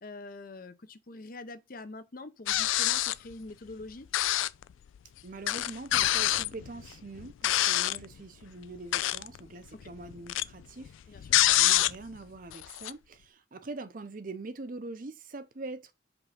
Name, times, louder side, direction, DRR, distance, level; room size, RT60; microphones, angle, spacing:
voice 1, 0.0-4.1 9.7-9.8 11.1-11.4, left 2 dB, 45° left, 0.7 m, -45 dB
sound 1, 2.5-3.3 4.1-4.6 4.9-5.0 5.5-8.0 8.7-9.4 9.7-12.2 12.5-12.9, left 15 dB, 80° left, 0.3 m, -26 dB
voice 2, 5.2-15.9, right 3 dB, 45° right, 0.6 m, -43 dB
5.3 x 3.6 x 5.8 m
head